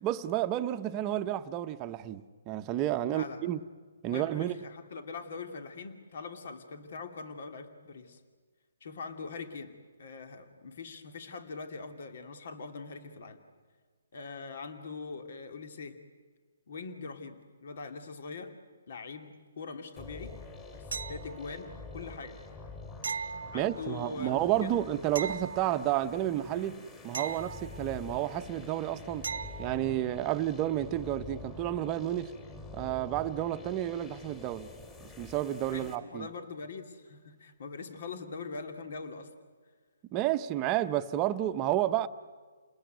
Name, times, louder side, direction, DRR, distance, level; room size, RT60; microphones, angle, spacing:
voice 1, 0.0-3.6 4.0-4.5 23.5-29.3 29.6-32.3 32.7-34.7 35.2-36.3 40.1-42.1, right 13 dB, 20° right, 1.0 m, -31 dB
voice 2, 3.1-3.5 4.0-8.2 8.8-13.4 14.1-16.0 16.7-18.5 18.9-22.4 23.5-24.8 35.7-39.3, left 4 dB, 60° left, 2.8 m, -42 dB
sound 1, 20.0-36.0, left 3 dB, 15° left, 3.3 m, -47 dB
sound 2, 20.9-21.7 23.0-24.1 25.2-26.2 27.1-28.2 29.2-29.9 32.6-32.7, right 5 dB, 75° right, 1.0 m, -39 dB
30.0 x 20.5 x 9.3 m
hypercardioid pair, 155°, 0 cm